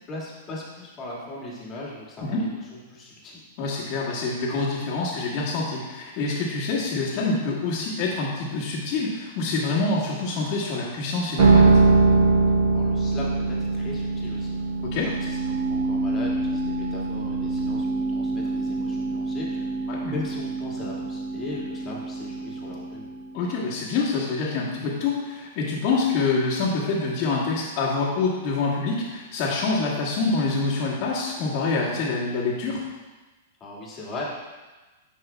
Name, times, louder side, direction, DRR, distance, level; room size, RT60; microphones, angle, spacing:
voice 1, 0.1-3.4 12.7-19.7 20.1-23.1 33.6-34.4, left 2 dB, 25° left, -4 dB, 2.0 m, -38 dB
voice 2, 3.6-11.7 14.8-15.1 19.9-20.2 23.3-32.8, left 3 dB, 50° left, -10 dB, 1.6 m, -26 dB
sound 1, 11.4-23.7, right 3 dB, 70° right, 0.8 m, -23 dB
9.8 x 5.5 x 2.3 m, 1.2 s
hypercardioid pair, 125°, 0 cm